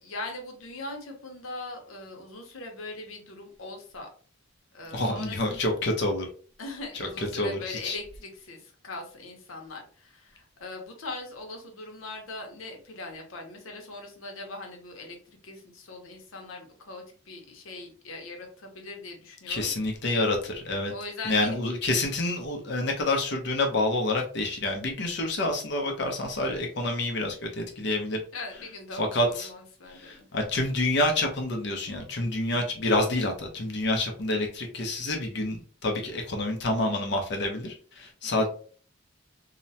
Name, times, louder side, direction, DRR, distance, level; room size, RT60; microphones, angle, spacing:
voice 1, 0.0-4.1 4.7-5.7 6.6-19.7 20.9-21.6 28.3-30.3 38.2-38.5, left 2 dB, 85° left, 3 dB, 0.8 m, -41 dB
voice 2, 4.9-6.3 6.9-8.0 19.5-20.9 21.3-28.2 29.0-29.5 30.0-38.5, left 2 dB, 55° left, 2 dB, 0.6 m, -28 dB
2.9 x 2.1 x 2.7 m, 0.41 s
head